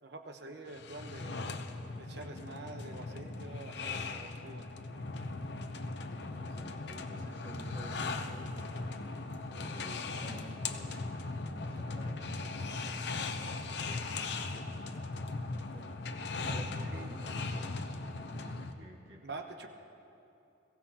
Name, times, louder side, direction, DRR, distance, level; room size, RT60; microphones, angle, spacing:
voice 1, 0.0-1.4 2.0-4.7 16.9-17.2 19.2-19.7, right 2 dB, 65° right, 5 dB, 1.1 m, -46 dB
sound 1, 0.7-18.7, left 3 dB, 65° left, 0.7 m, -39 dB
voice 2, 6.2-9.0 9.5-19.3 19.6-19.7, right 1 dB, 80° right, -2 dB, 2.0 m, -53 dB
22.0 x 16.5 x 2.9 m, 2.8 s
head